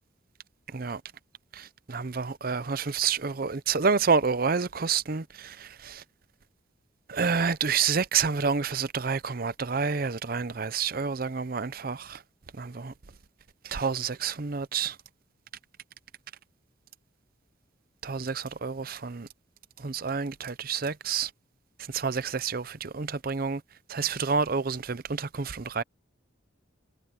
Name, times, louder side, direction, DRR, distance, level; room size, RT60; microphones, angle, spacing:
voice 1, 0.7-1.0 1.5-6.0 7.1-12.2 12.6-12.9 13.6-15.0 18.0-19.3 19.8-21.3 21.8-23.6 23.9-25.8, right 5 dB, 50° right, 0.7 m, -29 dB
head